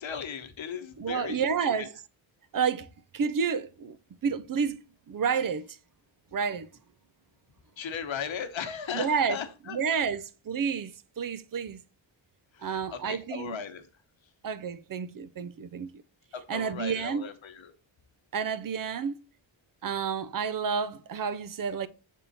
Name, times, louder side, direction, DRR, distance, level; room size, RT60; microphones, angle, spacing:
voice 1, 0.0-1.9 7.8-10.0 12.5-13.9 16.3-17.7, left 7 dB, 75° left, 1.1 m, -37 dB
voice 2, 1.0-1.9 2.5-2.9 3.1-4.0 4.2-4.8 5.1-5.8 6.3-6.7 8.9-9.4 9.7-11.8 12.6-13.6 14.4-16.0 16.5-17.3 18.3-19.2 19.8-21.9, right 6 dB, 45° right, 0.5 m, -30 dB
6.9 x 3.6 x 4.0 m
wide cardioid pair, 150°, 47 cm